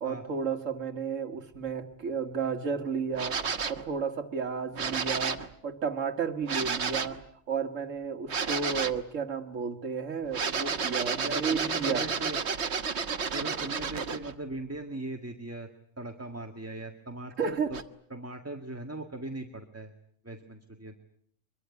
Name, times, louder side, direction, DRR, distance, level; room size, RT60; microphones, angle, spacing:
voice 1, 0.0-3.4 3.7-5.4 5.6-12.0 17.4-17.7, right 6 dB, 85° right, 3 dB, 1.8 m, -32 dB
sound 1, 3.1-3.9 4.7-5.5 6.5-7.2 8.3-9.0 10.3-14.3 17.7-17.8, right 5 dB, 60° right, 1.5 m, -31 dB
voice 2, 11.2-12.4 13.3-15.7 16.0-17.8 18.1-19.9 20.2-20.9, right 2 dB, 10° right, 5 dB, 1.8 m, -39 dB
25.0 x 22.5 x 9.6 m, 0.68 s
omnidirectional pair, 1.3 m